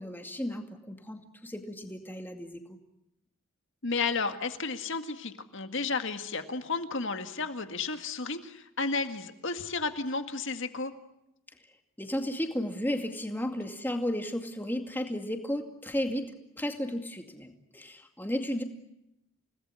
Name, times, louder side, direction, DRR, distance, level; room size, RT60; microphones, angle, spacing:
voice 1, 0.0-2.6 12.0-18.6, equal, 10° left, 5 dB, 2.4 m, -34 dB
voice 2, 3.8-10.9, left 4 dB, 55° left, 7 dB, 2.0 m, -32 dB
29.5 x 19.0 x 9.7 m, 0.85 s
head